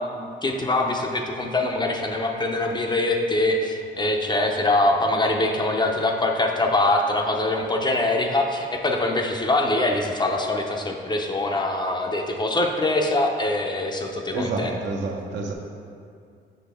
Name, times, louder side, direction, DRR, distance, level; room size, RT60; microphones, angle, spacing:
voice 1, 0.0-14.8, left 2 dB, 20° left, 2 dB, 0.6 m, -23 dB
voice 2, 14.3-15.5, right 3 dB, 65° right, 1 dB, 0.9 m, -28 dB
6.0 x 5.3 x 3.5 m, 2.3 s
cardioid pair, 90°, 20 cm